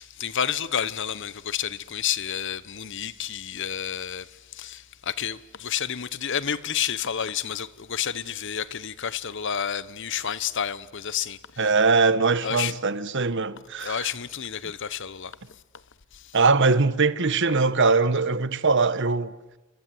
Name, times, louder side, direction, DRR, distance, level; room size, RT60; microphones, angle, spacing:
voice 1, 0.0-11.7 12.4-12.7 13.8-15.6 16.1-16.4, left 8 dB, 55° left, 1.0 m, -30 dB
voice 2, 11.6-14.1 16.3-19.3, right 4 dB, 55° right, 1.2 m, -21 dB
28.5 x 25.0 x 7.8 m
head